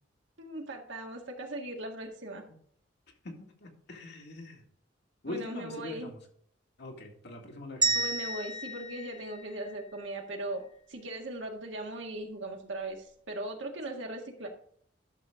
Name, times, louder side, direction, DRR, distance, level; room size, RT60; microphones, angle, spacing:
voice 1, 0.4-2.5 5.3-6.1 7.9-14.5, right 1 dB, 75° right, 1 dB, 1.9 m, -39 dB
voice 2, 3.2-4.6 5.2-6.2 6.8-8.0, left 2 dB, 60° left, 1 dB, 2.2 m, -43 dB
sound 1, 7.8-10.1, right 3 dB, 25° right, 0.8 m, -32 dB
11.5 x 6.7 x 3.7 m, 0.62 s
head